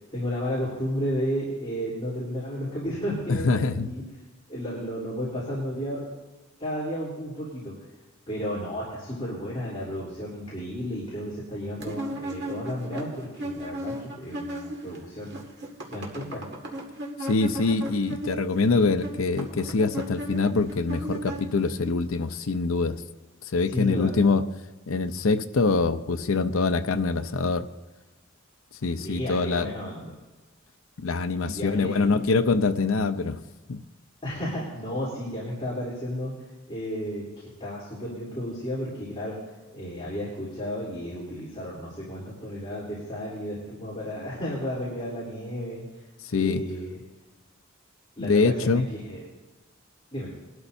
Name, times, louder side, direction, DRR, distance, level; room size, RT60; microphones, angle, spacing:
voice 1, 0.1-4.0 4.5-6.1 6.6-7.7 8.3-15.4 15.8-16.4 23.7-24.1 29.0-30.1 31.4-32.3 34.2-36.3 36.7-37.2 37.6-39.4 39.7-46.0 46.4-47.0 48.2-49.2 50.1-50.3, equal, 25° left, -7 dB, 3.4 m, -33 dB
voice 2, 3.3-3.9 17.2-23.0 23.4-24.4 24.9-27.7 28.8-29.7 31.0-33.4 33.7-33.8 46.2-46.6 48.2-48.9, left 4 dB, 80° left, 9 dB, 0.6 m, -24 dB
sound 1, 11.8-15.0 15.2-21.9, right 1 dB, 55° right, 1.9 m, -36 dB
21.0 x 12.5 x 2.7 m, 1.2 s
head